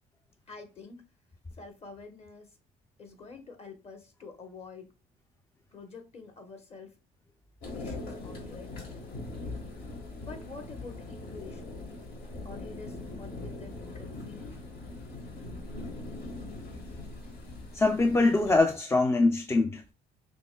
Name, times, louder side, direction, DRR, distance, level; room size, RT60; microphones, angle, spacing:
voice 1, 0.5-1.0 1.5-2.5 3.0-4.9 5.7-6.9 7.8-8.9 10.2-11.7 12.4-14.5, left 4 dB, 40° left, 1.2 m, -47 dB
sound 1, 7.6-18.6, left 2 dB, 65° left, 1.6 m, -41 dB
voice 2, 17.7-19.8, left 3 dB, 15° left, 0.3 m, -23 dB
6.0 x 2.9 x 2.3 m
cardioid pair, 110°, 17 cm